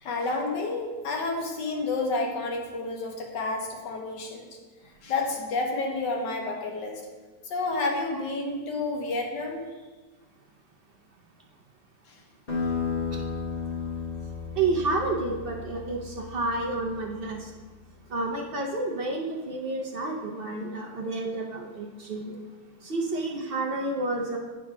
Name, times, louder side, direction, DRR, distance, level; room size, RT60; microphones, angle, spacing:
voice 1, 0.0-4.5 5.0-7.0 7.4-9.6 12.1-12.2, left 3 dB, 85° left, 2 dB, 1.7 m, -30 dB
sound 1, 12.5-17.6, left 5 dB, 35° left, 1.5 m, -34 dB
voice 2, 14.6-17.5 18.1-22.3 22.8-24.4, right 2 dB, 65° right, 0 dB, 0.5 m, -30 dB
9.1 x 3.6 x 4.8 m, 1.3 s
omnidirectional pair, 1.9 m